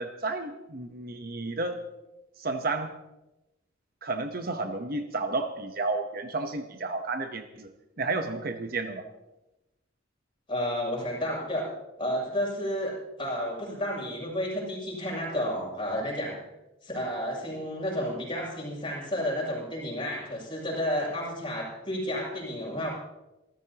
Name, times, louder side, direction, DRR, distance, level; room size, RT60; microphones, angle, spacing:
voice 1, 0.0-1.8 2.4-2.9 4.0-7.7 8.0-9.1, right 3 dB, 45° right, 6 dB, 1.0 m, -32 dB
voice 2, 10.5-11.7 12.0-16.4 16.8-22.9, equal, 25° left, -3 dB, 7.3 m, -31 dB
27.0 x 14.5 x 2.9 m, 0.97 s
head